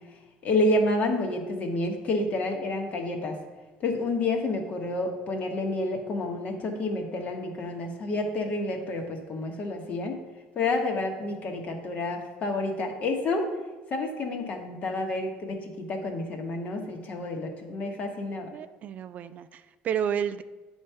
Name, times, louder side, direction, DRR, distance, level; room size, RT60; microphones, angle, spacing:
voice 1, 0.4-3.4 3.8-10.2 10.5-13.5 13.9-18.5, left 2 dB, 45° left, 3 dB, 1.2 m, -29 dB
voice 2, 18.5-20.4, right 8 dB, 45° right, 12 dB, 0.3 m, -31 dB
8.7 x 3.2 x 5.5 m, 1.2 s
cardioid pair, 120°, 4 cm